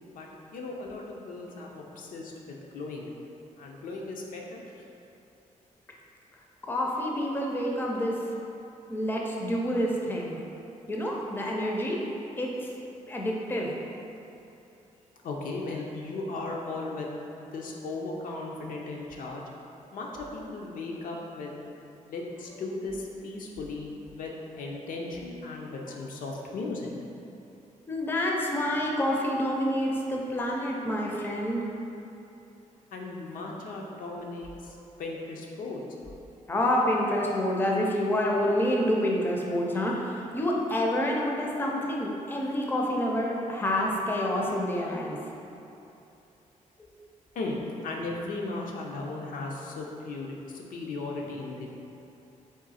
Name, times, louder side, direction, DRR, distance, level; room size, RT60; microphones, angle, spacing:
voice 1, 0.1-3.1 3.6-4.8 15.2-17.1 17.5-19.4 19.9-21.6 22.1-23.9 24.2-26.9 32.9-35.8 47.3-51.7, left 3 dB, 90° left, -1 dB, 0.6 m, -36 dB
voice 2, 6.6-8.3 8.9-10.4 10.9-12.0 12.4-13.7 27.9-31.7 34.8-34.9 36.5-45.2 46.8-46.9, left 1 dB, 15° left, -1 dB, 0.4 m, -28 dB
3.7 x 3.0 x 4.1 m, 2.8 s
wide cardioid pair, 160°, 14 cm